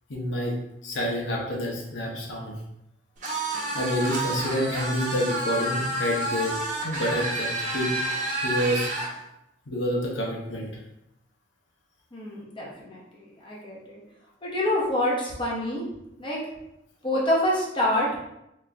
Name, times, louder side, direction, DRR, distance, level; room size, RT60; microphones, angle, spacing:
voice 1, 0.1-0.5 0.8-2.5 3.7-6.6 6.8-7.9 8.4-8.9 9.7-10.7, equal, 85° left, -2 dB, 0.9 m, -28 dB
sound 1, 3.2-9.1, right 1 dB, 45° right, 0.9 m, -29 dB
voice 2, 12.1-14.0 14.4-15.8 16.2-16.4 17.0-18.2, left 1 dB, 30° left, -5 dB, 0.9 m, -27 dB
4.3 x 2.5 x 3.3 m, 0.83 s
head